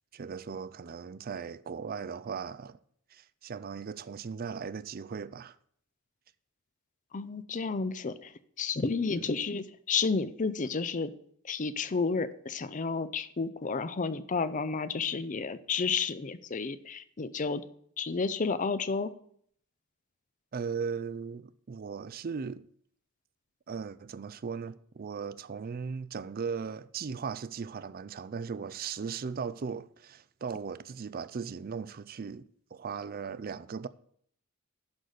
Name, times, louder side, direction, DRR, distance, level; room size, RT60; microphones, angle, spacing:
voice 1, 0.1-2.8 3.1-5.6 9.1-9.3 20.5-22.6 23.7-33.9, right 6 dB, 40° right, 0.4 m, -38 dB
voice 2, 7.1-11.1 11.4-17.6 18.0-19.1, left 4 dB, 35° left, 0.5 m, -31 dB
11.5 x 4.0 x 7.8 m
head